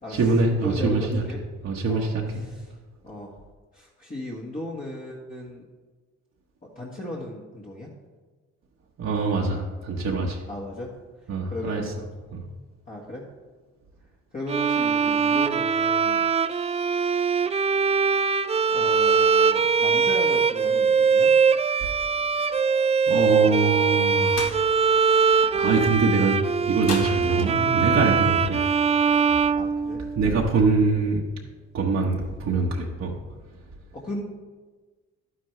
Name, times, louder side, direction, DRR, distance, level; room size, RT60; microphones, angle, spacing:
voice 1, 0.1-1.2 1.6-2.2 9.0-10.4 11.3-11.8 12.3-12.4 23.1-24.8 25.5-26.4 26.7-28.6 30.2-31.2 31.7-33.1, right 3 dB, 60° right, -2 dB, 1.4 m, -24 dB
voice 2, 0.6-1.4 1.9-2.7 3.0-3.3 3.7-5.6 6.6-7.9 10.5-10.9 11.5-12.0 12.9-13.2 14.3-16.2 18.7-21.3 27.3-27.6 29.5-30.0 33.9-34.2, left 1 dB, 25° left, -4 dB, 1.6 m, -36 dB
Bowed string instrument, 14.5-30.3, right 5 dB, 20° right, 0.4 m, -22 dB
sound 1, 24.3-24.6 26.8-27.8, left 4 dB, 55° left, 1.7 m, -34 dB
11.5 x 9.7 x 3.3 m, 1.3 s
cardioid pair, 90°, 30 cm